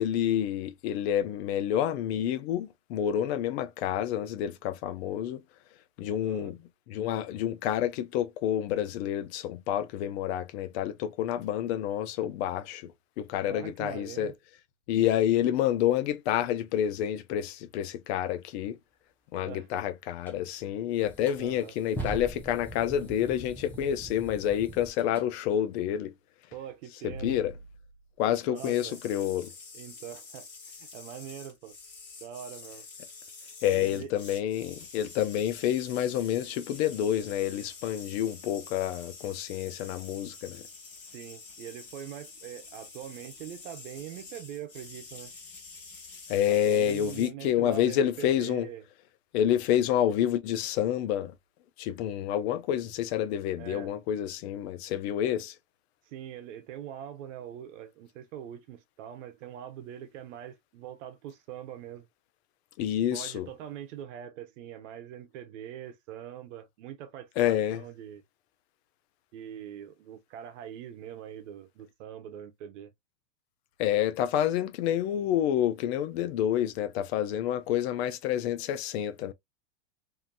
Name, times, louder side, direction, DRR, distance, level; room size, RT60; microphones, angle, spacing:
voice 1, 0.0-5.4 6.0-6.6 6.9-12.8 13.2-14.3 14.9-18.8 19.3-26.1 27.0-27.5 28.2-29.5 33.6-40.6 46.3-48.7 49.3-51.3 51.8-55.5 62.8-63.5 67.4-67.8 73.8-79.3, left 10 dB, 55° left, 0.5 m, -28 dB
voice 2, 6.2-6.5 13.4-14.3 19.4-19.7 21.4-21.7 26.5-27.4 28.4-29.0 29.7-30.5 30.8-31.8 32.2-32.9 33.7-34.1 41.0-45.3 46.5-48.8 53.6-53.9 56.1-62.1 63.1-68.2 69.3-72.9, right 10 dB, 65° right, 0.9 m, -43 dB
sound 1, 20.2-20.4 21.0-25.3, right 1 dB, 5° left, 0.6 m, -41 dB
sound 2, 28.5-47.3, left 4 dB, 30° left, 1.4 m, -47 dB
2.8 x 2.6 x 2.2 m
supercardioid pair, 140°, 39 cm